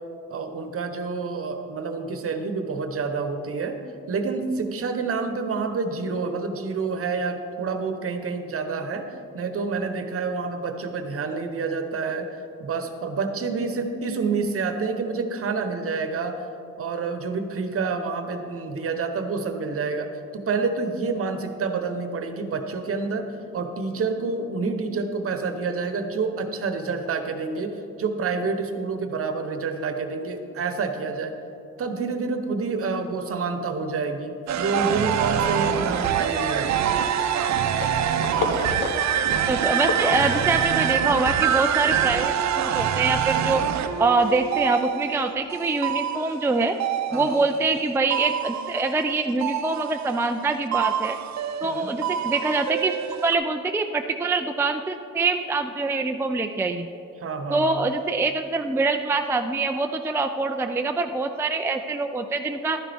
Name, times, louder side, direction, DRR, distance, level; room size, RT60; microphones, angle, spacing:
voice 1, 0.3-3.8 4.1-9.1 9.3-16.5 16.8-31.3 31.8-37.0 47.1-47.4 51.6-51.9 57.2-57.9, right 4 dB, 50° right, 7 dB, 1.0 m, -28 dB
sound 1, 34.4-41.0, left 4 dB, 85° left, 1.1 m, -35 dB
sound 2, 34.5-47.8 48.1-50.5 50.7-53.3, right 9 dB, 65° right, 0.7 m, -25 dB
voice 2, 39.5-43.6 44.0-46.8 47.1-51.2 51.6-56.9 57.5-62.8, right 3 dB, 10° right, 5 dB, 0.4 m, -24 dB
11.5 x 10.0 x 3.5 m, 2.8 s
cardioid pair, 90°, 30 cm